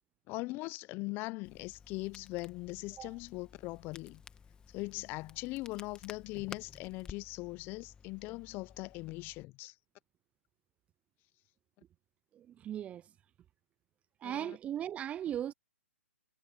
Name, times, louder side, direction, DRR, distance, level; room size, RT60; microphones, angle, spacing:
voice 1, 0.3-4.2 4.7-9.7 14.2-14.6, left 23 dB, 30° left, 0.9 m, -40 dB
Crackle, 1.4-9.4, left 6 dB, 10° left, 1.6 m, -54 dB
voice 2, 12.3-13.1 14.2-15.5, right 10 dB, 15° right, 0.5 m, -38 dB
hypercardioid pair, 130°, 7 cm